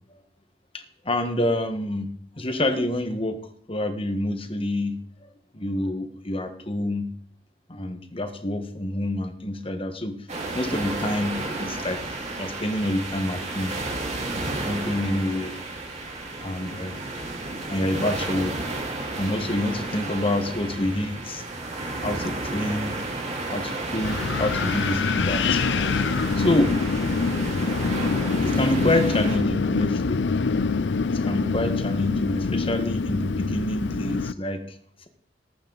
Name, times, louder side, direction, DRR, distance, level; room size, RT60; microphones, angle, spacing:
voice 1, 0.7-3.4 3.7-5.0 5.5-7.1 7.7-10.2 10.5-12.0 12.4-13.7 14.5-15.5 16.4-17.0 17.7-18.5 19.1-21.4 22.0-23.0 23.5-25.6 26.4-26.8 28.4-30.2 31.1-34.6, left 1 dB, 30° left, 7 dB, 1.4 m, -27 dB
sound 1, 10.3-29.4, right 2 dB, 40° right, 3.2 m, -32 dB
Wind, 24.0-34.3, left 4 dB, 70° left, 0.5 m, -25 dB
19.5 x 8.8 x 4.0 m, 0.63 s
head